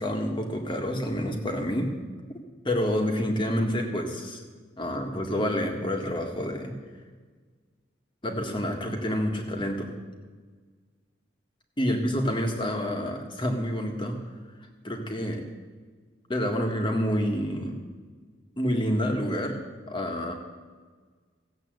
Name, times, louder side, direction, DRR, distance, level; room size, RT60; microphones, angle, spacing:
voice 1, 0.0-1.9 2.6-4.4 4.8-6.8 8.2-9.9 11.8-14.1 14.8-15.4 16.3-17.8 18.6-19.6 19.9-20.3, equal, 25° left, 3 dB, 1.7 m, -28 dB
16.0 x 8.1 x 7.9 m, 1.5 s
head